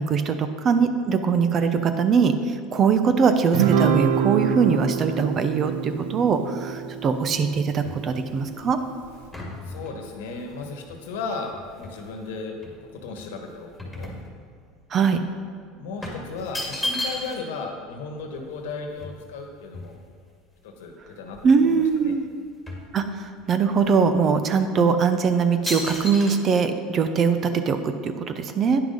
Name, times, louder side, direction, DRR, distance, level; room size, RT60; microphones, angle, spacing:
voice 1, 0.0-8.8 14.9-15.2 21.4-22.3 22.9-27.4 27.7-28.8, right 5 dB, 40° right, 9 dB, 0.8 m, -22 dB
Guitar, 3.5-8.1, right 8 dB, 85° right, 0.6 m, -25 dB
sound 1, 7.5-12.2 12.6-14.8 15.1-15.3 16.0-17.6 17.9-18.0 18.2-20.3 20.9-21.0 21.2-22.0 22.3-23.5 24.1-24.2 24.9-25.1 25.7-26.3, left 1 dB, 5° left, 2.3 m, -35 dB
voice 2, 9.6-12.5 12.8-13.7 13.9-14.1 15.7-20.0 20.6-22.1, left 4 dB, 85° left, 3 dB, 1.4 m, -35 dB
9.7 x 5.9 x 5.3 m, 2.1 s
supercardioid pair, 105°, 0 cm